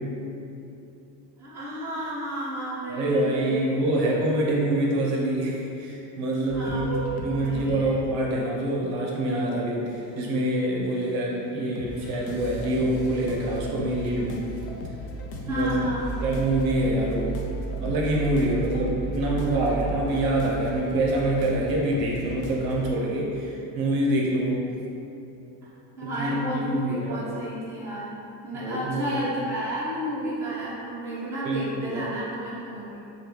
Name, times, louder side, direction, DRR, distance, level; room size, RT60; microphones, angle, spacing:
voice 1, 1.4-3.7 6.5-7.9 15.5-16.1 25.6-33.0, right 1 dB, 5° right, -10 dB, 0.5 m, -32 dB
voice 2, 2.9-14.4 15.5-15.8 16.2-17.4 17.8-24.7 26.0-27.4 28.5-29.3 31.4-32.1, right 1 dB, 55° right, -2 dB, 0.6 m, -26 dB
sound 1, 6.5-7.9 8.6-8.9 9.6-10.6 10.8-22.9, right 2 dB, 55° left, 0.6 m, -35 dB
3.5 x 2.3 x 2.9 m, 2.9 s
cardioid pair, 140°, 45 cm